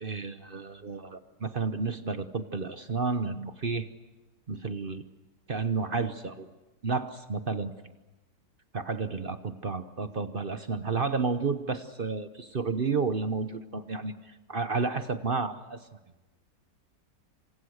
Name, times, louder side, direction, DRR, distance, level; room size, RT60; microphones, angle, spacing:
voice 1, 0.0-3.9 4.5-5.0 5.5-6.5 6.8-7.7 8.7-15.8, right 4 dB, 40° right, 10 dB, 0.9 m, -31 dB
28.5 x 26.5 x 6.5 m, 1.1 s
omnidirectional pair, 1.9 m